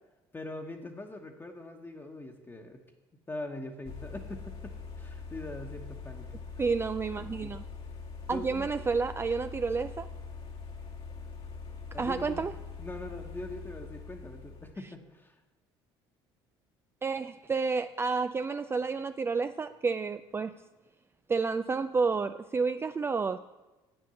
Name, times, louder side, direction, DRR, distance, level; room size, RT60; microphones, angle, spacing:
voice 1, 0.3-2.8 3.3-6.3 8.3-8.7 11.9-15.4, left 2 dB, 20° left, 1 dB, 1.2 m, -42 dB
sound 1, 3.8-14.7, left 4 dB, 50° left, 1.5 m, -43 dB
voice 2, 6.6-7.6 8.3-10.1 12.0-12.5 17.0-20.5 21.3-23.4, right 4 dB, 20° right, 10 dB, 0.4 m, -30 dB
8.5 x 7.8 x 7.0 m, 1.1 s
supercardioid pair, 75°, 12 cm